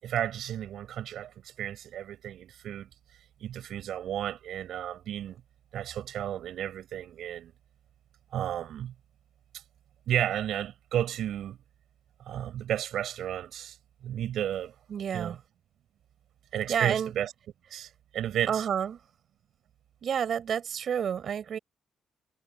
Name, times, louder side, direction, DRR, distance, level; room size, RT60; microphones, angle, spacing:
voice 1, 0.0-2.9 3.4-5.4 5.7-7.5 8.3-8.9 10.1-11.6 12.3-13.8 14.0-14.7 15.1-15.4 16.5-17.3 17.7-18.6, right 11 dB, 70° right, 7.8 m, -33 dB
voice 2, 14.9-15.4 16.7-17.1 18.5-19.0 20.0-21.6, right 8 dB, 45° right, 5.5 m, -29 dB
cardioid pair, 175°, 0 cm